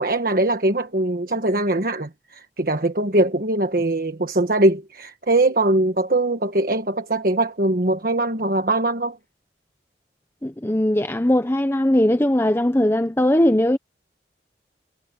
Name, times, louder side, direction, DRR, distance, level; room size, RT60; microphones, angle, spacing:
voice 1, 0.0-9.2, right 2 dB, 55° right, 1.4 m, -21 dB
voice 2, 10.4-13.8, left 1 dB, 15° left, 0.7 m, -19 dB
head